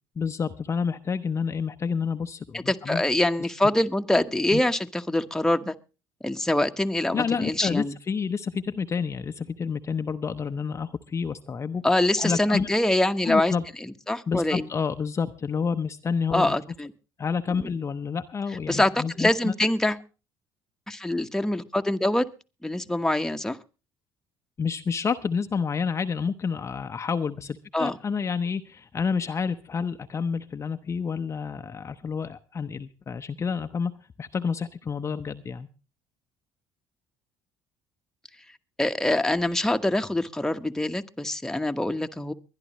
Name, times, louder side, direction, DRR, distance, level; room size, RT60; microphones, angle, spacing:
voice 1, 0.2-3.0 4.5-4.6 7.1-11.8 12.2-12.7 13.3-13.6 14.3-16.6 17.2-19.5 24.6-33.9 34.2-35.7, left 5 dB, 35° left, 8 dB, 0.7 m, -29 dB
voice 2, 2.5-5.7 6.2-8.0 11.8-13.5 14.1-14.7 16.3-16.9 17.6-17.7 18.7-20.0 20.9-22.3 22.6-23.6 27.7-28.0 38.8-42.3, left 1 dB, 5° left, 7 dB, 1.1 m, -24 dB
23.0 x 11.0 x 3.1 m, 0.32 s
supercardioid pair, 75°, 9 cm